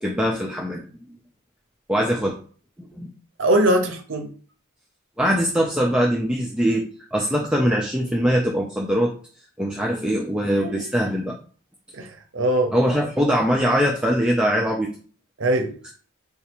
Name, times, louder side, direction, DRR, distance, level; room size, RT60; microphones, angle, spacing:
voice 1, 0.0-1.1 1.9-2.3 2.8-3.1 5.2-9.1 9.6-11.4 12.7-14.9, equal, 5° right, -2 dB, 0.3 m, -22 dB
voice 2, 3.4-4.3 10.6-10.8 11.9-12.7 15.4-15.7, right 1 dB, 55° right, 4 dB, 0.7 m, -21 dB
4.4 x 2.4 x 2.9 m, 0.41 s
head